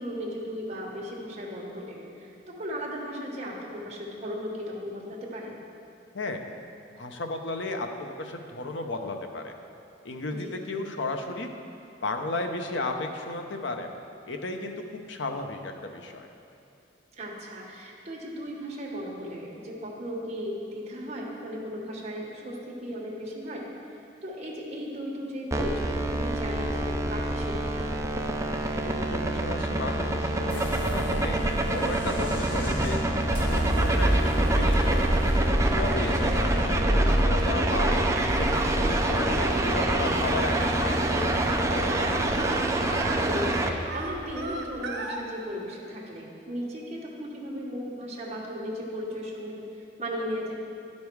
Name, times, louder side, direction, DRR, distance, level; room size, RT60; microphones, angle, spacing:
voice 1, 0.0-5.5 10.3-10.5 17.1-27.9 35.9-36.3 43.1-49.6 50.0-50.6, equal, 35° right, -3 dB, 1.4 m, -36 dB
voice 2, 7.0-9.5 10.0-11.5 12.0-13.9 14.3-16.3 28.8-33.0 33.5-35.3 35.8-38.0 38.4-41.3 41.7-42.2, left 2 dB, 70° left, 5 dB, 0.7 m, -34 dB
sound 1, 25.5-43.7, right 1 dB, 15° right, 0.5 m, -27 dB
sound 2, 30.5-44.7, right 1 dB, 30° left, 1.3 m, -29 dB
Singing, 38.3-45.2, right 2 dB, 60° right, 0.9 m, -38 dB
11.5 x 5.3 x 4.7 m, 2.6 s
head